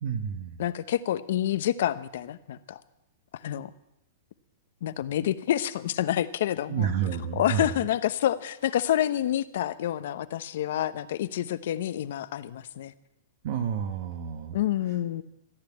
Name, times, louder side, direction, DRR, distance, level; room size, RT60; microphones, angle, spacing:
voice 1, 0.0-0.6 6.7-7.9 13.4-14.6, right 8 dB, 55° right, 6 dB, 1.3 m, -30 dB
voice 2, 0.6-2.8 3.4-3.7 4.8-6.9 7.4-12.9 14.5-15.2, left 12 dB, 65° left, 13 dB, 0.9 m, -28 dB
15.0 x 10.0 x 8.7 m, 0.85 s
hypercardioid pair, 150°, 0 cm